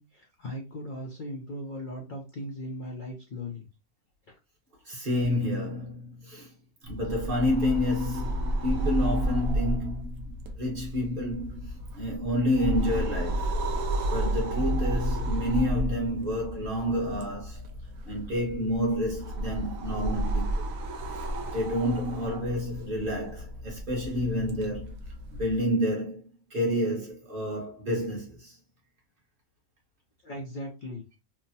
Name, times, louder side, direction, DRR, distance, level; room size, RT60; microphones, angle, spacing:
voice 1, 0.0-3.6 4.3-4.4 30.2-31.0, left 1 dB, 55° left, 0.5 m, -38 dB
voice 2, 4.8-6.5 6.8-11.7 11.9-13.6 14.1-17.6 18.0-20.7 21.5-24.9 25.3-28.6, left 1 dB, 40° right, 1.1 m, -29 dB
sound 1, 6.8-25.6, right 1 dB, 80° right, 1.0 m, -32 dB
3.1 x 2.0 x 2.6 m
omnidirectional pair, 1.5 m